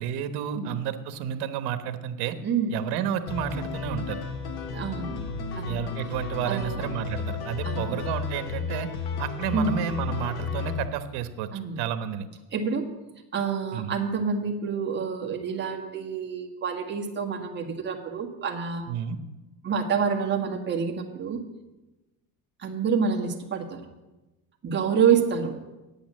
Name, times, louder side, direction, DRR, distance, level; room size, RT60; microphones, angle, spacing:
voice 1, 0.0-2.4 2.7-4.2 5.7-8.9 9.2-11.5 11.8-12.3 13.7-14.0 18.9-19.2, right 9 dB, 70° right, 10 dB, 1.1 m, -31 dB
voice 2, 2.4-2.8 4.7-5.2 5.5-5.8 6.5-6.9 7.6-8.0 9.5-9.8 11.5-11.8 12.5-12.8 13.3-18.8 19.6-21.4 22.6-23.8 24.6-25.6, right 6 dB, 25° right, 1 dB, 1.5 m, -27 dB
sound 1, 3.3-10.8, left 5 dB, 65° left, 1.3 m, -33 dB
8.7 x 8.7 x 7.4 m, 1.1 s
cardioid pair, 140°, 41 cm